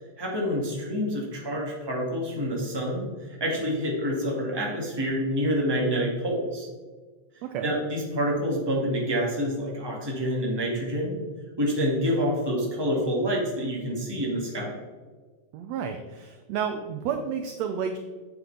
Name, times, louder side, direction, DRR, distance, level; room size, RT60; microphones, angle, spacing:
voice 1, 0.2-6.7 7.6-11.1 11.6-14.7, equal, 10° right, -3 dB, 1.6 m, -27 dB
voice 2, 7.4-7.7 15.5-18.0, right 7 dB, 80° right, 6 dB, 1.5 m, -31 dB
9.4 x 7.9 x 3.5 m, 1.4 s
omnidirectional pair, 3.7 m